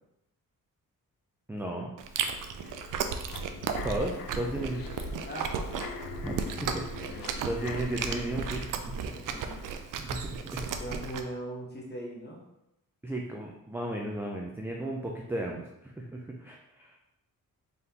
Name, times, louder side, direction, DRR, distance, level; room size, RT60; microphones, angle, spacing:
voice 1, 1.5-1.9 3.8-4.8 6.2-7.2 7.4-9.0 10.0-10.7 13.0-17.0, right 1 dB, 5° right, 0 dB, 0.3 m, -35 dB
Chewing mastication, 2.0-11.2, right 6 dB, 65° right, 0.5 m, -35 dB
sound 1, 2.1-8.5, left 6 dB, 75° left, 0.5 m, -43 dB
voice 2, 5.2-5.6 7.0-7.5 8.7-9.6 10.8-12.4, right 1 dB, 30° left, -3 dB, 1.2 m, -40 dB
4.0 x 3.4 x 2.8 m, 0.86 s
cardioid pair, 120°, 34 cm